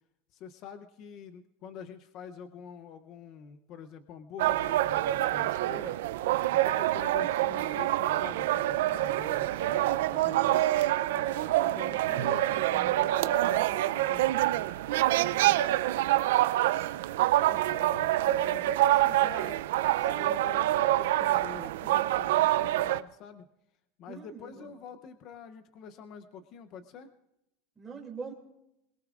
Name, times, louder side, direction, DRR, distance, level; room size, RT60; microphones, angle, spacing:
voice 1, 0.3-6.0 6.4-10.6 11.1-14.6 17.4-19.7 20.0-23.5 24.0-27.1, left 7 dB, 35° left, 9 dB, 0.7 m, -46 dB
sound 1, 4.4-23.0, right 15 dB, 75° right, 0.5 m, -26 dB
voice 2, 11.3-12.2 24.1-24.7 27.8-28.3, right 5 dB, 10° right, -2 dB, 2.6 m, -45 dB
26.5 x 21.5 x 2.5 m, 0.85 s
supercardioid pair, 175°, 0 cm